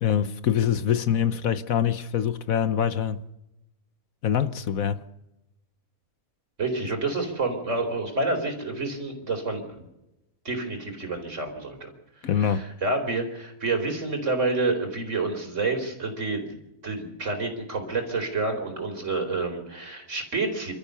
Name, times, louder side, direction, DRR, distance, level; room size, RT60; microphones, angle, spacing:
voice 1, 0.0-3.2 4.2-5.0 12.2-12.6, left 9 dB, 70° left, 1.3 m, -24 dB
voice 2, 6.6-9.8 10.4-11.9 12.3-20.7, right 3 dB, 50° right, 4.4 m, -29 dB
28.0 x 14.0 x 6.9 m
omnidirectional pair, 1.6 m